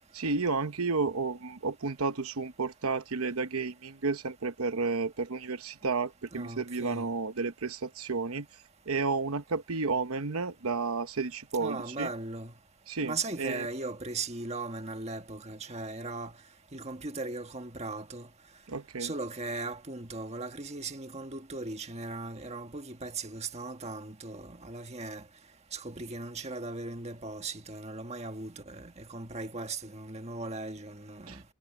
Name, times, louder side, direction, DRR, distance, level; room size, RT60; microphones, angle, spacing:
voice 1, 0.1-8.5 8.9-12.1 12.9-13.7 18.7-19.1 31.3-31.4, right 4 dB, 75° right, 0.9 m, -32 dB
voice 2, 6.3-7.1 11.6-12.5 13.0-16.3 16.7-18.3 19.0-25.2 25.7-31.4, right 3 dB, 30° right, 1.6 m, -38 dB
head